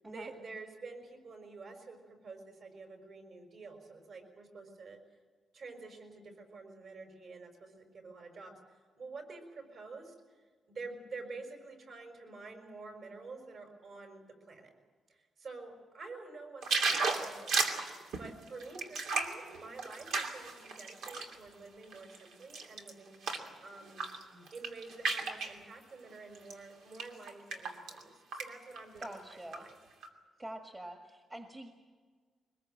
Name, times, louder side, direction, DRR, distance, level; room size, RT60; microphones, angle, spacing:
voice 1, 0.0-5.0 5.5-14.7 15.1-17.8 18.2-23.2 23.6-24.1 24.5-29.8, right 3 dB, 50° right, 4 dB, 5.5 m, -49 dB
sound 1, 16.6-21.4 21.8-23.5 23.9-24.2 24.5-25.6 26.3-26.5 26.9-28.0 28.3-28.5 28.8-29.6 30.0-30.1, right 4 dB, 75° right, 2.8 m, -34 dB
voice 2, 29.0-29.6 30.4-31.7, right 1 dB, 15° right, 3 dB, 1.7 m, -46 dB
23.0 x 21.0 x 7.6 m, 1.5 s
wide cardioid pair, 170°, 0 cm